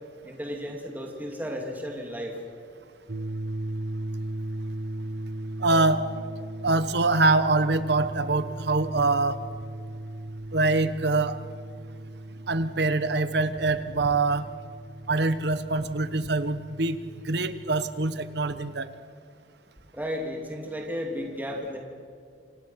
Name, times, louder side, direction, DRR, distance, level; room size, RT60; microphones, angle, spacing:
voice 1, 0.2-2.3 19.9-21.8, equal, 10° right, 1 dB, 2.8 m, -33 dB
sound 1, 3.1-18.9, right 1 dB, 50° right, 0.8 m, -38 dB
voice 2, 5.6-6.0 6.6-9.4 10.5-11.4 12.5-14.5 15.1-17.0 17.2-18.9, right 3 dB, 65° right, 12 dB, 1.3 m, -24 dB
28.0 x 26.5 x 5.9 m, 2.2 s
head